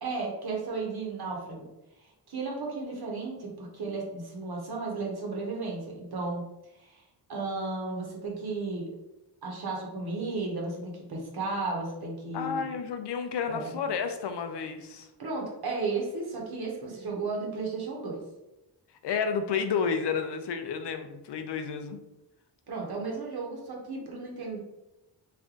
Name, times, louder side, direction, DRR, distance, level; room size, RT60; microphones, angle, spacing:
voice 1, 0.0-1.7 2.0-6.4 6.7-7.0 7.3-9.0 9.4-12.7 13.5-13.7 15.2-18.2 22.7-24.6, right 3 dB, 60° right, -1 dB, 1.1 m, -34 dB
voice 2, 12.3-15.1 19.0-22.0, left 6 dB, 70° left, 7 dB, 0.5 m, -31 dB
3.3 x 2.5 x 3.7 m, 0.94 s
wide cardioid pair, 90°, 43 cm